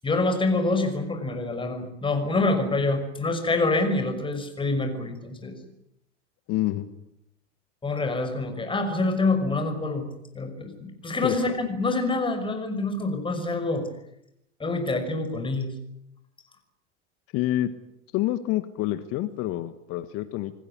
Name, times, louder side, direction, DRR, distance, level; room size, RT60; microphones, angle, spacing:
voice 1, 0.0-5.6 7.8-10.1 10.3-13.9 14.6-15.7, left 2 dB, 15° left, 7 dB, 5.7 m, -26 dB
voice 2, 6.5-6.9 11.2-11.4 17.3-17.7 18.1-20.5, left 15 dB, 40° left, 12 dB, 1.6 m, -27 dB
27.0 x 19.5 x 9.8 m, 0.79 s
figure-of-eight pair, 85°, 36 cm